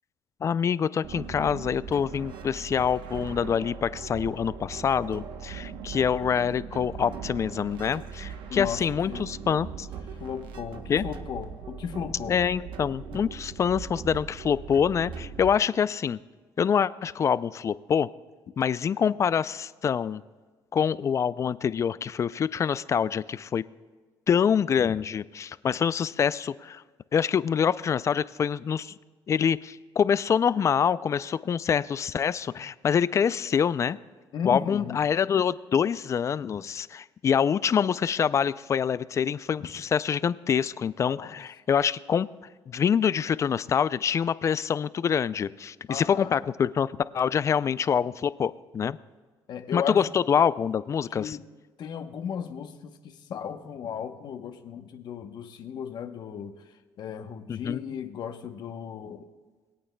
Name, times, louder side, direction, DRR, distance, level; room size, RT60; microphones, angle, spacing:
voice 1, 0.4-9.9 10.9-11.0 12.3-16.2 16.6-18.1 18.6-20.2 20.7-23.6 24.3-26.8 27.1-28.9 29.3-34.0 34.4-42.3 42.7-49.0 49.7-51.4 57.5-57.8, left 7 dB, 35° left, 17 dB, 0.3 m, -25 dB
sound 1, 1.0-15.5, right 6 dB, 70° right, 0.9 m, -40 dB
voice 2, 8.5-9.3 10.2-12.4 34.3-35.0 41.2-41.3 45.9-46.4 49.5-50.0 51.2-51.5 51.8-59.3, left 7 dB, 55° left, 6 dB, 0.9 m, -35 dB
22.0 x 8.7 x 2.2 m, 1.4 s
cardioid pair, 105°, 9 cm